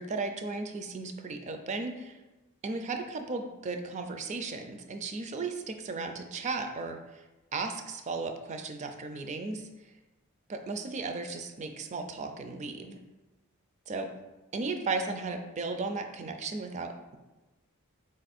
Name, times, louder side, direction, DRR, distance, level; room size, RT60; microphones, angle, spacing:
voice 1, 0.0-2.2 2.6-7.2 7.5-9.7 10.5-13.0 13.9-14.1 14.5-17.2, right 3 dB, 35° right, 6 dB, 0.3 m, -35 dB
4.1 x 2.5 x 4.1 m, 1.1 s
head